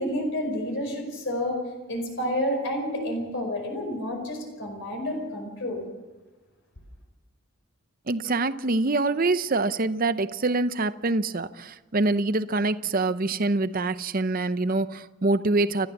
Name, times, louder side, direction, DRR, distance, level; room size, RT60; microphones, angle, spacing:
voice 1, 0.0-1.6 1.9-5.9, equal, 55° left, 3 dB, 5.0 m, -29 dB
voice 2, 8.1-15.9, right 2 dB, 40° right, 13 dB, 0.7 m, -25 dB
30.0 x 14.0 x 7.3 m, 1.2 s
head